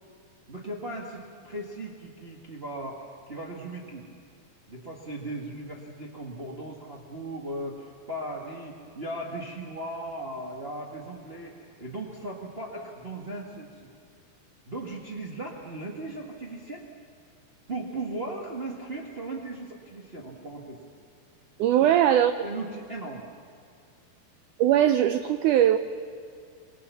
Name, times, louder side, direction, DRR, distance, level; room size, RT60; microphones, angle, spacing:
voice 1, 0.5-4.1 4.7-13.7 14.7-16.8 17.7-20.8 21.8-22.0 22.4-23.2, right 2 dB, 35° right, -3 dB, 0.9 m, -37 dB
voice 2, 21.6-22.3 24.6-25.8, right 11 dB, 85° right, 10 dB, 1.7 m, -20 dB
25.0 x 23.0 x 7.1 m, 2.4 s
omnidirectional pair, 4.4 m